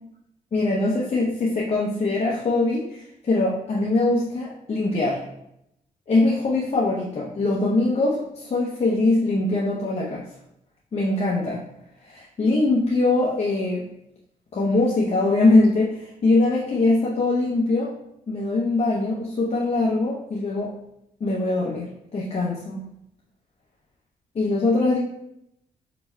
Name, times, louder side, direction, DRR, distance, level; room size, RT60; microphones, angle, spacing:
voice 1, 0.5-5.2 6.1-10.2 10.9-11.6 12.0-13.8 14.5-17.9 18.3-20.7 21.2-22.8 24.3-25.0, left 2 dB, 45° left, -5 dB, 0.8 m, -22 dB
4.4 x 4.0 x 2.3 m, 0.79 s
cardioid pair, 80°, 15 cm